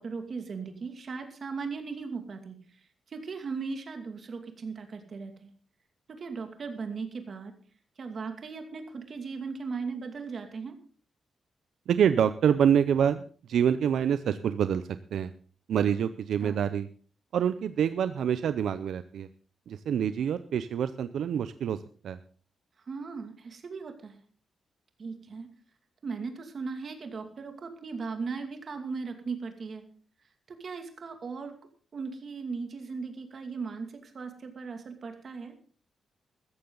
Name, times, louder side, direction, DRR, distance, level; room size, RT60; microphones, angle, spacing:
voice 1, 0.0-2.6 3.1-5.5 6.2-7.5 8.0-10.8 16.4-16.6 22.9-24.2 25.0-25.5 26.0-29.8 30.5-31.5 31.9-35.5, right 4 dB, 40° right, 6 dB, 2.4 m, -37 dB
voice 2, 11.9-15.3 15.7-16.9 17.3-19.3 19.7-22.2, right 8 dB, 75° right, 12 dB, 0.6 m, -26 dB
15.0 x 14.0 x 3.9 m, 0.42 s
wide cardioid pair, 165°, 0 cm